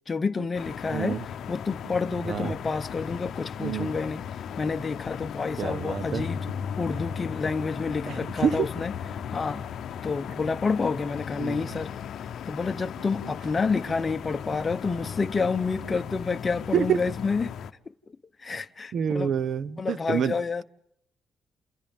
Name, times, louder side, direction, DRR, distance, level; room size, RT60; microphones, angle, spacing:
voice 1, 0.1-4.2 4.6-6.5 6.8-8.9 9.3-9.6 10.0-11.9 12.5-17.5 18.4-19.3 19.8-20.6, left 4 dB, 30° left, 0.9 m, -29 dB
sound 1, 0.5-17.7, left 8 dB, 70° left, 0.8 m, -37 dB
voice 2, 0.9-1.2 2.3-2.5 3.6-3.9 5.6-6.2 8.1-8.7 11.4-11.6 16.7-17.0 18.9-20.4, right 8 dB, 60° right, 0.8 m, -27 dB
29.5 x 28.5 x 3.6 m
cardioid pair, 90°, 0 cm